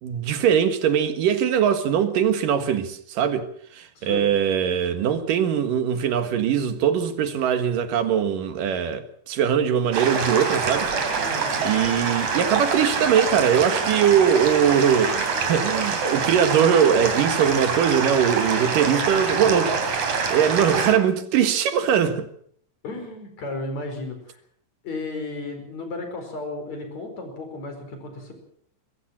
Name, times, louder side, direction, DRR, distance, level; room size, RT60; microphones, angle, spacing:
voice 1, 0.0-10.9 11.6-19.7 20.3-22.3, right 8 dB, 85° right, 3.2 m, -21 dB
voice 2, 4.0-4.3 11.2-11.6 18.7-20.0 22.8-24.4 24.8-28.3, left 2 dB, 55° left, 6.0 m, -34 dB
sound 1, 9.9-20.9, right 5 dB, 60° right, 4.3 m, -25 dB
22.5 x 15.0 x 7.5 m
omnidirectional pair, 3.8 m